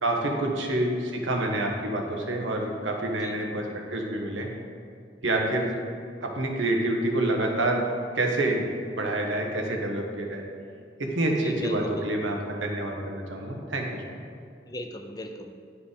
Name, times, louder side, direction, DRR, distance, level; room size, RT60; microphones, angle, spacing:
voice 1, 0.0-3.6 3.9-4.5 5.2-5.7 6.2-7.8 8.1-10.4 11.0-14.2, right 1 dB, 90° right, 1 dB, 1.3 m, -27 dB
voice 2, 3.2-3.5 11.4-12.4 14.7-15.5, left 1 dB, 20° left, 5 dB, 0.5 m, -38 dB
9.7 x 5.1 x 5.1 m, 2.3 s
head